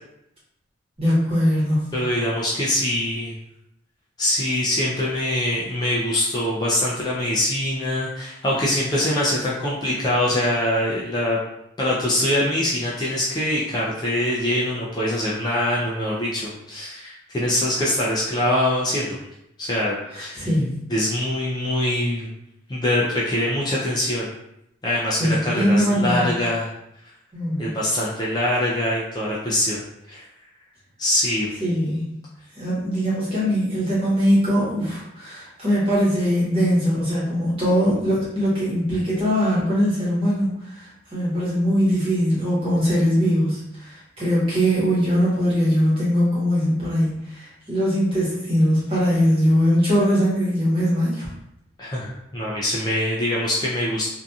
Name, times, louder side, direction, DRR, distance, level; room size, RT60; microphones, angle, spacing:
voice 1, 1.0-1.9 20.1-20.7 25.2-26.3 27.3-27.7 31.6-32.1 32.5-51.3, equal, 30° right, -9 dB, 1.1 m, -21 dB
voice 2, 1.9-3.3 4.2-11.4 11.8-19.2 19.6-20.5 20.9-22.3 22.7-24.3 24.8-26.7 27.6-30.2 31.0-31.5 51.8-54.0, left 1 dB, 20° left, -6 dB, 0.3 m, -23 dB
2.6 x 2.5 x 2.3 m, 0.81 s
head